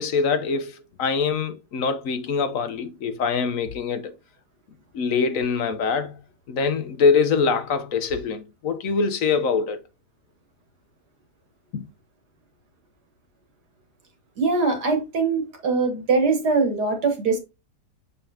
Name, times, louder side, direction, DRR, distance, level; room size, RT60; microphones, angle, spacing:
voice 1, 0.0-4.1 4.9-6.2 6.5-9.8 11.7-11.8, left 5 dB, 55° left, 1.0 m, -24 dB
voice 2, 14.4-17.4, right 4 dB, 65° right, 2.0 m, -22 dB
6.9 x 5.4 x 2.8 m
omnidirectional pair, 1.9 m